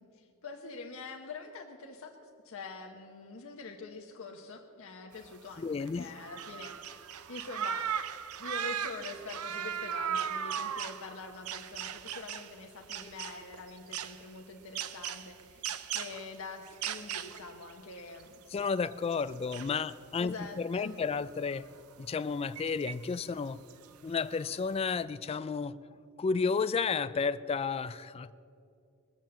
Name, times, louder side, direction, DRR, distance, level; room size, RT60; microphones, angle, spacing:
voice 1, 0.0-7.9 8.4-15.6 15.9-18.4 20.2-21.0, left 4 dB, 65° left, 2 dB, 0.9 m, -45 dB
sound 1, 5.2-5.3 5.5-5.6 5.9-12.6 12.8-14.2 14.7-16.3 16.7-18.6 18.9-19.9 20.2-20.3 20.9-21.0 21.5-21.6 22.4-23.2 23.7-24.1, right 8 dB, 85° right, 0.6 m, -37 dB
voice 2, 5.6-6.1 18.5-21.7 22.0-23.6 24.0-25.7 26.2-28.3, left 5 dB, 25° left, 15 dB, 0.3 m, -32 dB
20.0 x 7.3 x 7.5 m, 2.5 s
head